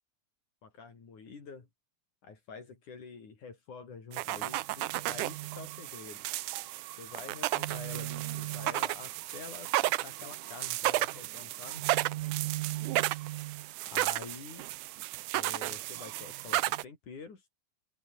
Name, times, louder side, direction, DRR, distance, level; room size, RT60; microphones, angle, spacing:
voice 1, 0.6-1.7 2.2-6.3 7.0-11.8 13.4-13.5 13.9-14.7 15.3-17.4, left 5 dB, 80° left, 6.2 m, -47 dB
sound 1, 4.1-16.8, right 17 dB, 90° right, 2.3 m, -33 dB
open air
omnidirectional pair, 3.4 m